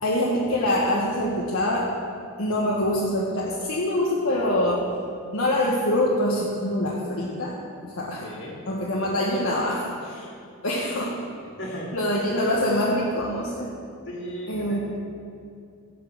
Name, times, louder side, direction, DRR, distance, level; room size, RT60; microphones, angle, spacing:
voice 1, 0.0-1.9 2.4-5.0 5.3-7.6 7.8-8.3 8.7-10.3 10.6-11.2 11.9-13.7 14.5-14.8, left 1 dB, 75° left, -5 dB, 1.4 m, -25 dB
voice 2, 8.2-8.6 11.6-11.9 14.1-14.8, equal, 55° left, -2 dB, 2.5 m, -36 dB
16.0 x 5.5 x 7.3 m, 2.4 s
head